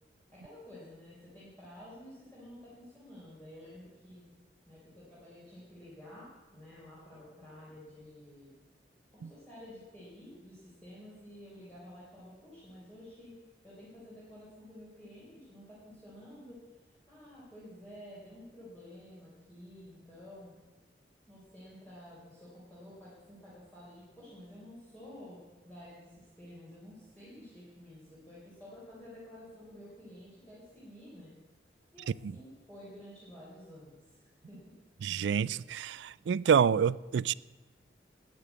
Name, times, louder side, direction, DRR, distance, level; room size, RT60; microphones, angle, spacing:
voice 1, 0.3-4.2 4.7-8.6 9.1-13.3 13.6-20.5 21.3-31.3 31.9-34.8, left 1 dB, 10° left, 3.7 m, -51 dB
voice 2, 35.0-37.3, right 7 dB, 85° right, 0.3 m, -28 dB
11.5 x 9.2 x 8.2 m
head